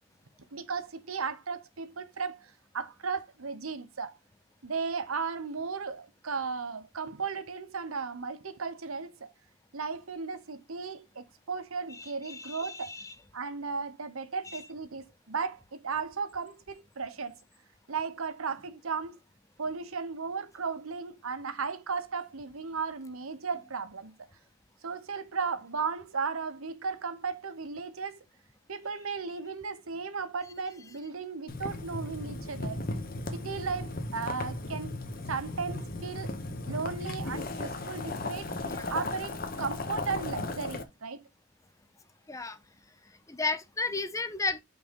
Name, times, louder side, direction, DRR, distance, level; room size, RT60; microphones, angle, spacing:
voice 1, 0.5-4.2 4.6-9.3 9.7-12.9 13.3-17.4 17.9-19.2 19.6-24.2 24.8-28.2 28.7-32.8 33.3-35.0 35.3-36.3 36.7-41.3, right 5 dB, 85° right, 1.0 m, -35 dB
voice 2, 12.0-13.1 14.5-14.6 38.6-38.9 42.3-42.6 43.3-44.6, left 3 dB, 15° left, 0.5 m, -34 dB
Boiling, 31.5-40.8, left 2 dB, 45° left, 1.1 m, -36 dB
5.7 x 3.9 x 5.2 m
head